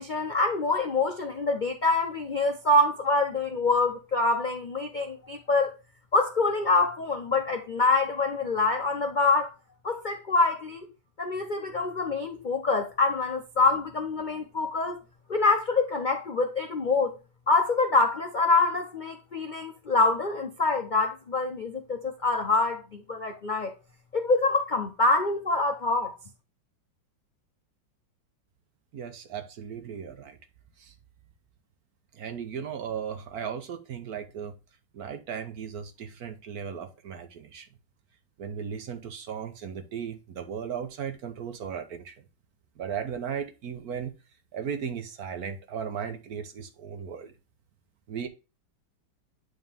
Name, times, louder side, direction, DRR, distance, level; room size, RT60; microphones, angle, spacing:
voice 1, 0.0-5.7 6.1-9.5 9.8-10.9 11.2-15.0 15.3-17.1 17.5-23.7 24.1-26.1, left 3 dB, 75° left, 0.4 m, -25 dB
voice 2, 28.9-30.4 30.8-30.9 32.1-34.5 34.9-37.7 38.4-42.2 42.8-44.1 44.5-47.3 48.1-48.3, right 7 dB, 60° right, 1.2 m, -36 dB
9.3 x 3.9 x 3.5 m
omnidirectional pair, 2.1 m